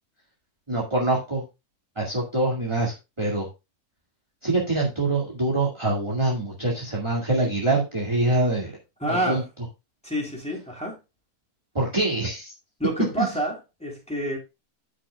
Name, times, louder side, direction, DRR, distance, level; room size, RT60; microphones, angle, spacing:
voice 1, 0.7-1.4 2.0-3.5 4.4-8.7 9.1-9.4 11.7-12.5 13.2-13.3, right 2 dB, 20° right, -3 dB, 2.1 m, -24 dB
voice 2, 9.0-9.4 10.0-11.0 12.8-14.4, equal, 5° left, -2 dB, 3.6 m, -28 dB
13.5 x 6.0 x 2.3 m, 0.25 s
omnidirectional pair, 1.7 m